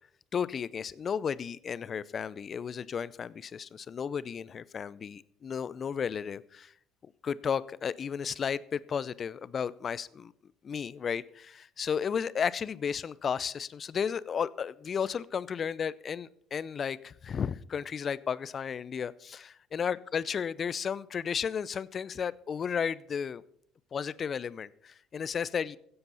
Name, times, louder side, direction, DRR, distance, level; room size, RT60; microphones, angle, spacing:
voice 1, 0.3-6.7 7.0-10.3 10.6-23.4 23.9-25.8, left 7 dB, 45° left, 19 dB, 0.6 m, -33 dB
15.5 x 7.9 x 5.5 m, 0.67 s
hypercardioid pair, 65°, 0 cm